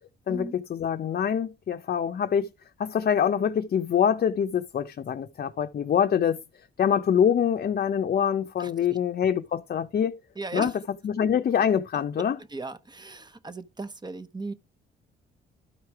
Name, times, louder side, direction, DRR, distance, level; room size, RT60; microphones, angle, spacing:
voice 1, 0.3-2.5 2.8-6.4 6.8-10.2 10.5-10.7 11.0-12.4, left 8 dB, 50° left, 0.8 m, -25 dB
voice 2, 8.6-9.0 10.3-10.8 12.2-14.5, right 3 dB, 20° right, 1.1 m, -37 dB
12.5 x 4.9 x 4.7 m
cardioid pair, 90°, 20 cm